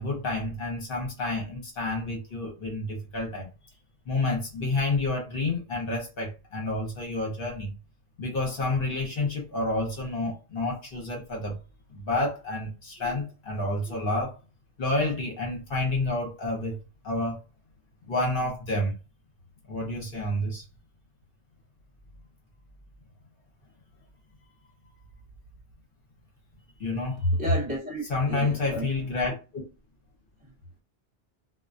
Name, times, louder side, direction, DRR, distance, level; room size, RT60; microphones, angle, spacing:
voice 1, 0.0-3.5 4.1-7.7 8.2-11.5 11.9-14.4 14.8-16.8 17.0-17.4 18.0-18.9 19.7-20.6 26.8-27.3 28.1-29.6, left 2 dB, 55° left, 0.9 m, -29 dB
voice 2, 27.2-28.9 30.4-30.5, equal, 40° right, 1.0 m, -28 dB
2.3 x 2.2 x 2.5 m
omnidirectional pair, 1.2 m